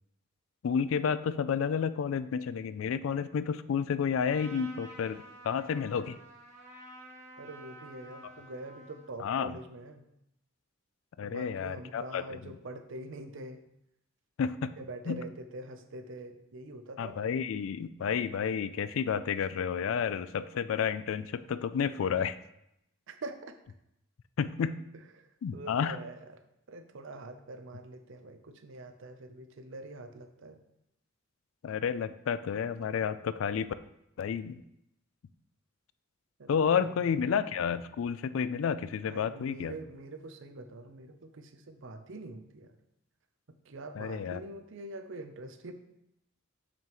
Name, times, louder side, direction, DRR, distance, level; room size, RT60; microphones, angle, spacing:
voice 1, 0.6-6.2 8.2-8.3 9.2-9.5 11.2-12.2 14.4-14.7 15.1-15.2 17.0-22.4 24.4-24.8 25.4-26.0 31.6-33.7 34.2-34.6 36.5-39.7 44.0-44.4, left 7 dB, 70° left, 14 dB, 0.3 m, -31 dB
Trumpet, 4.2-9.1, right 1 dB, 35° right, 1.4 m, -51 dB
voice 2, 7.4-10.1 11.2-13.6 14.8-17.2 23.1-23.6 25.2-26.4 26.7-30.6 36.4-37.2 39.1-42.7 43.5-45.7, right 2 dB, 65° right, 8 dB, 0.6 m, -45 dB
6.8 x 6.1 x 3.0 m, 0.81 s
head